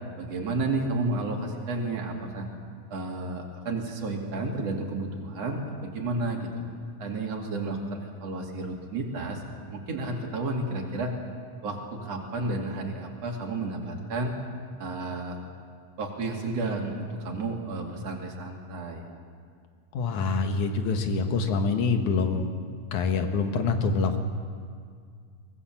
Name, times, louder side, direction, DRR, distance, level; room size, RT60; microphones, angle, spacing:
voice 1, 0.2-2.5 2.9-6.5 7.0-9.4 9.7-11.1 11.6-14.3 14.8-15.4 16.0-19.1, right 2 dB, 60° right, 1 dB, 3.5 m, -31 dB
voice 2, 19.9-22.5 22.9-24.2, left 4 dB, 80° left, 6 dB, 2.8 m, -25 dB
23.5 x 18.5 x 7.3 m, 2.1 s
omnidirectional pair, 3.4 m